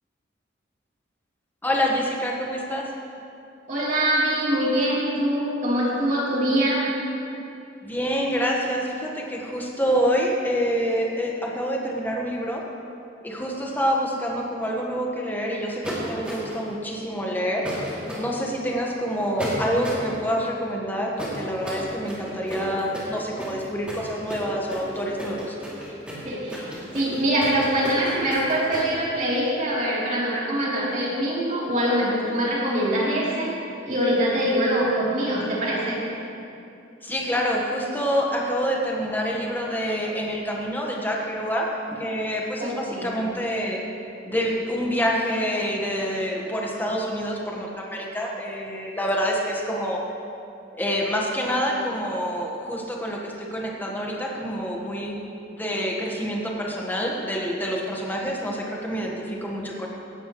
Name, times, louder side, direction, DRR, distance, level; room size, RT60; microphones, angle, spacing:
voice 1, 1.6-2.9 7.8-12.6 13.2-17.7 18.2-25.6 37.0-41.7 41.9-43.8 44.2-50.0 50.7-55.2 55.5-59.9, equal, 10° left, -1 dB, 1.3 m, -27 dB
voice 2, 3.7-6.8 26.2-26.7 26.9-33.5 33.8-36.0 42.6-43.1, right 1 dB, 40° right, -7 dB, 3.2 m, -23 dB
sound 1, 15.8-16.7 17.6-18.2 19.4-20.1 21.2-28.9, equal, 5° right, 2.6 m, -34 dB
16.5 x 12.0 x 3.1 m, 2.6 s
head